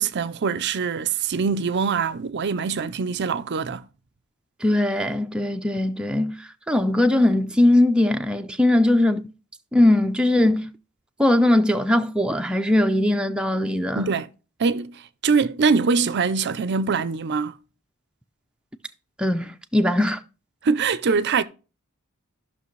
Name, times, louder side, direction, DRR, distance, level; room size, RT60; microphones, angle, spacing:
voice 1, 0.0-3.8 14.0-14.3 14.6-17.5 20.6-21.4, right 5 dB, 55° right, 0.5 m, -23 dB
voice 2, 4.6-9.3 9.7-10.7 11.2-14.1 19.2-20.2, left 1 dB, 5° right, 0.5 m, -20 dB
13.5 x 5.9 x 3.2 m
head